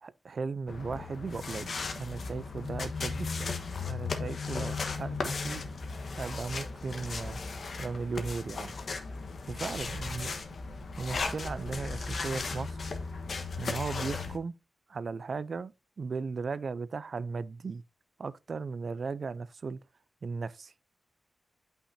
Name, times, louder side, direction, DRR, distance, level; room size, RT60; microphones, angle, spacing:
voice 1, 0.0-3.5 3.9-5.6 6.2-7.4 7.8-8.8 9.5-10.3 11.0-12.8 13.6-14.6 14.9-15.7 16.0-17.8 18.2-19.8 20.2-20.7, right 4 dB, 60° right, 0.4 m, -36 dB
sound 1, 0.7-14.4, left 4 dB, 65° left, 1.2 m, -36 dB
8.6 x 5.7 x 2.7 m
wide cardioid pair, 100°, 0 cm